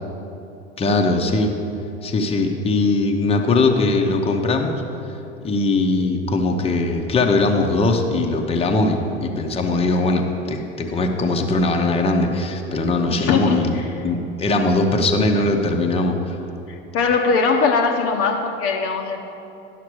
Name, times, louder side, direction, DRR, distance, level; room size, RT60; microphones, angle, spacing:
voice 1, 0.8-1.5 2.0-4.8 5.4-16.4, left 2 dB, 20° left, 3 dB, 0.8 m, -20 dB
voice 2, 13.1-13.9 16.7-19.2, left 4 dB, 45° left, 3 dB, 0.8 m, -21 dB
10.5 x 5.8 x 4.7 m, 2.8 s
hypercardioid pair, 75°, 32 cm